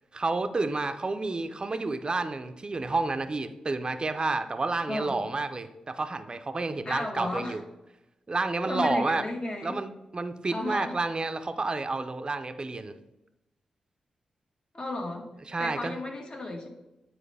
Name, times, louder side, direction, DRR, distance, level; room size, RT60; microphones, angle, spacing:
voice 1, 0.1-7.6 8.3-9.2 9.6-12.9 15.5-16.0, right 3 dB, 40° right, 9 dB, 0.6 m, -30 dB
voice 2, 4.9-5.2 6.8-7.6 8.6-9.8 10.5-10.9 14.7-15.3 15.6-16.7, left 2 dB, 45° left, 0 dB, 1.7 m, -33 dB
8.7 x 4.3 x 3.4 m, 0.95 s
supercardioid pair, 40°, 2 cm